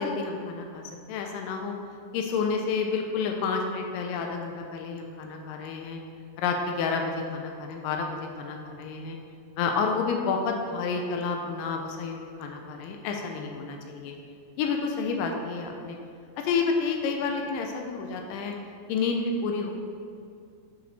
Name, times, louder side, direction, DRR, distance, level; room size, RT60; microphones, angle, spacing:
voice 1, 0.0-1.7 2.1-6.0 6.4-9.2 9.6-14.1 14.6-16.0 16.4-18.5 18.9-19.7, left 5 dB, 90° left, 2 dB, 2.3 m, -30 dB
10.0 x 4.9 x 3.1 m, 2.3 s
omnidirectional pair, 3.8 m